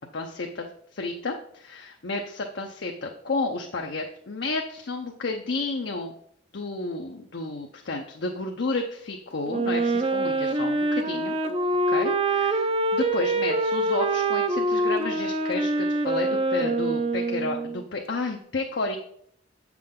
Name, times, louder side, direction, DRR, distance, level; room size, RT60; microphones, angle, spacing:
voice 1, 0.1-6.1 6.5-11.3 11.9-19.0, left 3 dB, 60° left, 2 dB, 0.7 m, -31 dB
Wind instrument woodwind instrument, 9.5-17.8, right 2 dB, 30° right, 0.5 m, -25 dB
7.7 x 6.0 x 3.7 m, 0.68 s
head